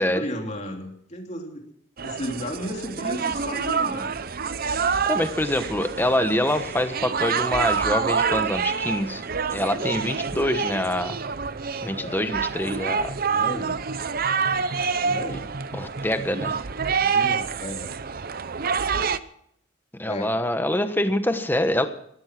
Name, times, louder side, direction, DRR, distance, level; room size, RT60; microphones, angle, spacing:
voice 1, 0.0-1.6 2.0-4.1 11.9-12.2 13.3-13.8 15.0-15.5 17.0-17.9 20.0-20.3, left 1 dB, 35° left, 1 dB, 3.2 m, -34 dB
sound 1, 2.0-19.2, right 5 dB, 50° right, 0.7 m, -27 dB
voice 2, 5.0-9.2 9.5-11.2 11.8-13.2 15.7-16.6 20.0-21.9, left 1 dB, 10° left, 9 dB, 1.2 m, -25 dB
17.0 x 13.5 x 6.0 m, 0.70 s
head